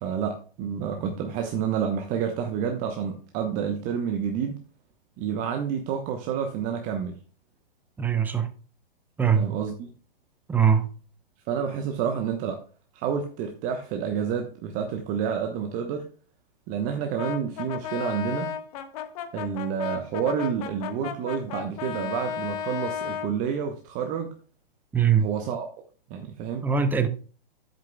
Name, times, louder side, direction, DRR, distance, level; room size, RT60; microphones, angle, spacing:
voice 1, 0.0-4.6 5.2-7.2 9.4-9.9 11.5-12.6 12.9-16.1 16.7-18.5 19.3-24.3 25.2-25.8 26.1-26.7, right 7 dB, 30° right, 1.0 m, -29 dB
voice 2, 8.0-8.5 9.2-9.5 10.5-10.9 24.9-25.3 26.6-27.1, right 7 dB, 5° right, 0.6 m, -21 dB
Brass instrument, 17.2-23.3, left 9 dB, 40° left, 1.3 m, -34 dB
10.5 x 8.0 x 2.2 m
figure-of-eight pair, 115°, 29 cm